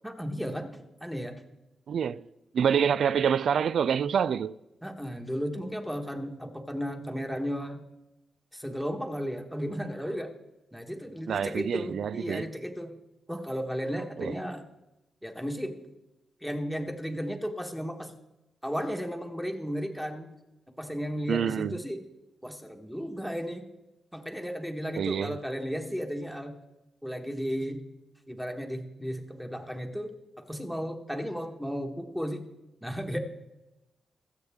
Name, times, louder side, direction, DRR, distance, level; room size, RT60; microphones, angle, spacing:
voice 1, 0.0-1.4 4.8-7.8 8.5-10.3 10.7-12.9 13.3-14.6 15.2-15.8 16.4-18.1 18.6-20.3 20.8-22.0 22.4-23.7 24.1-26.6 27.0-27.8 28.3-30.1 30.4-32.5 32.8-33.2, equal, 5° right, 1.4 m, -34 dB
voice 2, 1.9-2.3 2.5-4.5 11.3-12.5 14.2-14.3 21.3-21.8 25.0-25.4, right 7 dB, 65° right, 0.3 m, -27 dB
21.5 x 8.0 x 3.6 m
wide cardioid pair, 135°, 0 cm